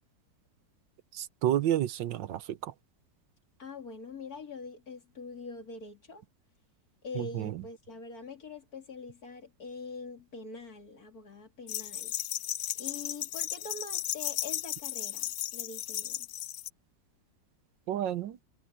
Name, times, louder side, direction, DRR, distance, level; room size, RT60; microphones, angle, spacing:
voice 1, 1.1-2.7 7.2-7.5 17.9-18.4, right 12 dB, 85° right, 1.5 m, -30 dB
voice 2, 3.6-6.2 7.0-12.1 12.8-16.3, left 3 dB, 55° left, 3.3 m, -44 dB
sound 1, 11.7-16.7, left 13 dB, 85° left, 0.6 m, -35 dB
omnidirectional pair, 2.0 m